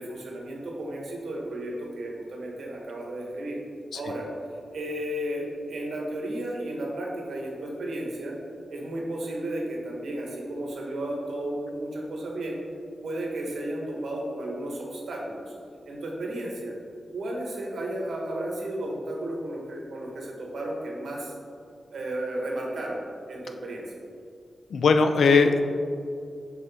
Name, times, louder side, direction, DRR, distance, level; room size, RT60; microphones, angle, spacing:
voice 1, 0.0-3.6 3.9-4.3 4.7-8.4 8.7-12.6 13.0-15.5 15.8-16.7 17.1-21.3 21.9-23.0 23.3-23.8, right 1 dB, 85° right, -2 dB, 1.2 m, -33 dB
voice 2, 24.7-25.6, left 4 dB, 90° left, 7 dB, 0.4 m, -19 dB
6.5 x 4.5 x 3.4 m, 2.3 s
wide cardioid pair, 165°, 0 cm